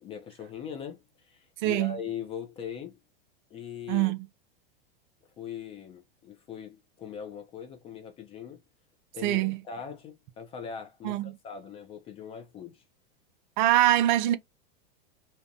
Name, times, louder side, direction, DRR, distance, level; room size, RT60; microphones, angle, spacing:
voice 1, 0.0-3.0 3.5-4.1 5.4-8.6 9.1-12.8, left 7 dB, 20° left, 0.3 m, -41 dB
voice 2, 1.6-2.0 3.9-4.2 9.2-9.6 11.0-11.3 13.6-14.4, right 14 dB, 50° right, 0.4 m, -24 dB
2.6 x 2.1 x 2.5 m
hypercardioid pair, 125°, 29 cm